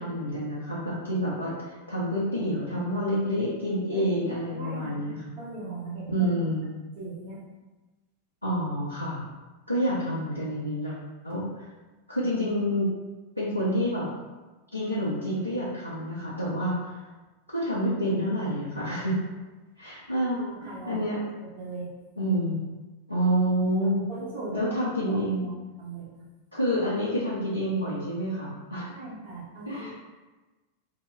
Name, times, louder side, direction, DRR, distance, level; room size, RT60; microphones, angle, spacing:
voice 1, 0.0-5.2 6.1-6.7 8.4-9.2 9.7-10.9 11.2-11.5 12.1-12.9 13.4-14.1 14.7-17.0 17.5-19.2 19.8-21.2 22.2-22.6 23.1-24.0 24.5-25.5 26.5-28.9 29.7-29.9, equal, 85° left, -7 dB, 0.5 m, -28 dB
voice 2, 4.4-6.3 6.7-7.4 20.3-21.0 21.4-21.9 24.1-25.5 25.8-26.2 28.9-30.0, right 3 dB, 50° right, -6 dB, 1.1 m, -39 dB
2.7 x 2.2 x 3.1 m, 1.2 s
figure-of-eight pair, 90°, 0 cm